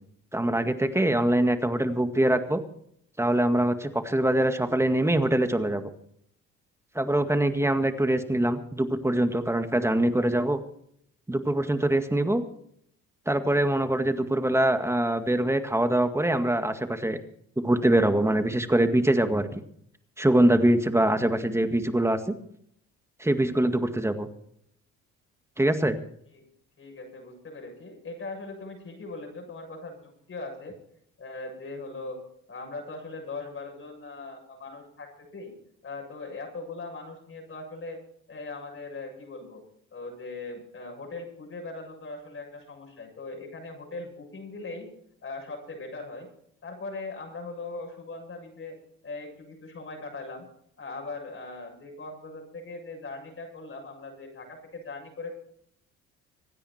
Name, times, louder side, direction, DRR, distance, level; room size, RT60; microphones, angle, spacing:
voice 1, 0.3-2.6 3.2-5.8 7.0-10.6 11.3-12.4 13.3-17.2 17.6-19.6 20.2-22.3 23.2-24.3 25.6-26.0, right 1 dB, 10° right, 8 dB, 1.9 m, -23 dB
voice 2, 26.8-30.8 31.2-32.2 32.5-35.5 35.8-38.0 38.3-39.6 39.9-44.9 45.2-46.3 46.6-48.8 49.0-50.5 50.8-55.3, left 3 dB, 40° left, 1 dB, 7.6 m, -40 dB
26.0 x 10.0 x 4.4 m, 0.68 s
supercardioid pair, 85°, 32 cm